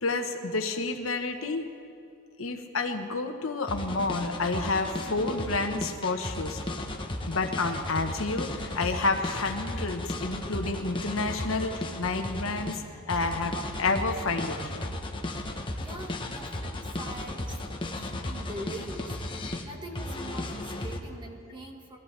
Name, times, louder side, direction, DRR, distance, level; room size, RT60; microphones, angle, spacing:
voice 1, 0.0-1.6 2.4-6.6 7.3-14.9, left 3 dB, 75° left, 5 dB, 1.2 m, -30 dB
sound 1, 3.7-12.8 13.1-19.6 19.9-21.0, left 1 dB, 25° left, 1.1 m, -35 dB
voice 2, 15.8-22.0, right 1 dB, 25° right, 1 dB, 1.6 m, -43 dB
22.5 x 15.5 x 3.4 m, 2.6 s
head